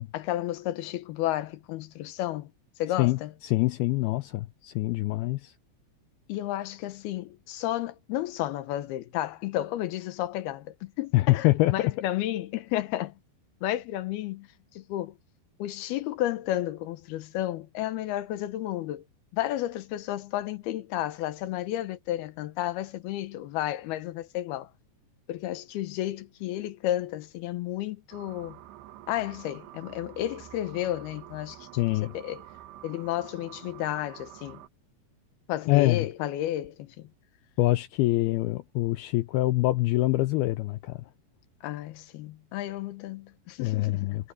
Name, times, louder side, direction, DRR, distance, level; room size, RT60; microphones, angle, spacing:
voice 1, 0.1-2.5 2.8-3.3 6.3-13.1 13.6-14.5 14.7-15.1 15.6-19.0 19.3-24.7 25.3-28.6 29.1-32.4 32.8-34.6 35.5-37.1 41.6-44.3, left 13 dB, 75° left, 2.8 m, -32 dB
voice 2, 3.0-5.5 11.1-11.7 31.8-32.1 35.7-36.1 37.6-41.0 43.6-44.3, left 19 dB, 90° left, 2.2 m, -25 dB
sound 1, 28.1-34.7, right 14 dB, 85° right, 3.5 m, -48 dB
omnidirectional pair, 5.0 m